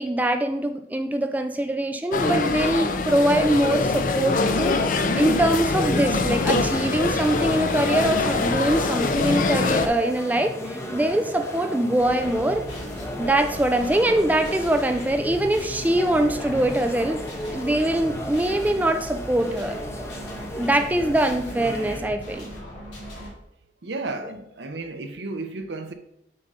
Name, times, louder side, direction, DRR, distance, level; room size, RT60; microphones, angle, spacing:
voice 1, 0.0-4.8 5.2-12.6 13.2-19.8 20.6-22.5, right 1 dB, 10° right, 0.3 m, -23 dB
sound 1, 2.1-9.9, left 3 dB, 45° left, 0.5 m, -23 dB
sound 2, 7.0-22.0, left 1 dB, 15° left, 0.8 m, -36 dB
sound 3, 12.0-23.3, equal, 80° left, 2.0 m, -39 dB
voice 2, 23.8-25.9, right 3 dB, 80° right, 0.8 m, -33 dB
7.8 x 2.7 x 5.4 m
head